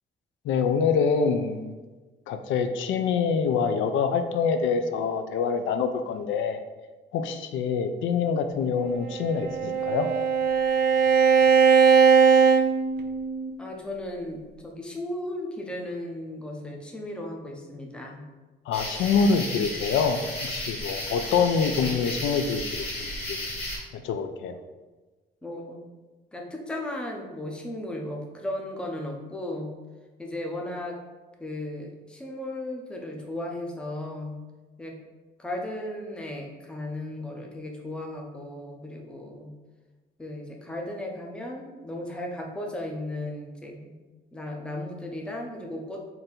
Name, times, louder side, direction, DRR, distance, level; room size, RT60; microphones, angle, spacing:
voice 1, 0.4-1.8 2.3-6.6 7.1-10.1 18.7-23.5 24.0-24.6, left 5 dB, 90° left, 8 dB, 0.4 m, -25 dB
Bowed string instrument, 9.1-13.5, right 6 dB, 60° right, 0.4 m, -20 dB
voice 2, 13.6-18.2 25.4-25.8 26.3-29.7 30.2-31.0 31.4-34.4 34.8-35.0 35.4-39.5 40.2-44.0 44.3-46.1, left 1 dB, 5° left, 1 dB, 0.4 m, -35 dB
sound 1, 18.7-23.8, left 1 dB, 30° left, 1.5 m, -34 dB
3.8 x 2.6 x 4.2 m, 1.3 s
cardioid pair, 170°, 19 cm